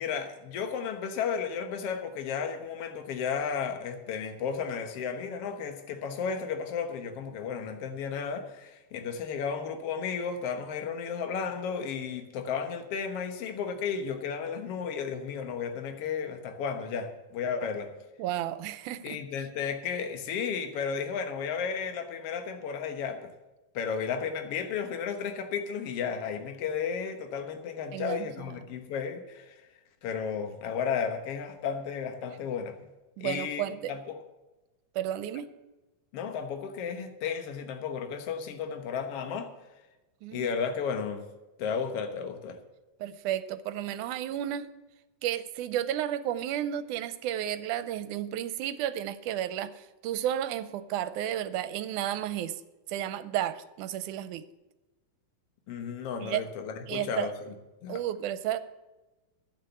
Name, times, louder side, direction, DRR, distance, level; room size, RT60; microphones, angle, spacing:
voice 1, 0.0-17.9 19.0-23.3 23.7-29.6 30.0-32.7 33.2-34.2 36.1-39.5 40.3-41.2 41.6-42.6 55.7-57.5 57.8-58.0, left 6 dB, 55° left, 6 dB, 2.1 m, -33 dB
voice 2, 18.2-19.2 27.9-28.6 33.2-33.9 35.0-35.5 40.2-40.5 43.0-44.7 45.2-52.6 52.9-54.5 56.2-56.5 56.9-57.3 57.9-58.6, right 11 dB, 80° right, 13 dB, 2.2 m, -32 dB
11.5 x 8.7 x 6.9 m, 1.1 s
omnidirectional pair, 3.5 m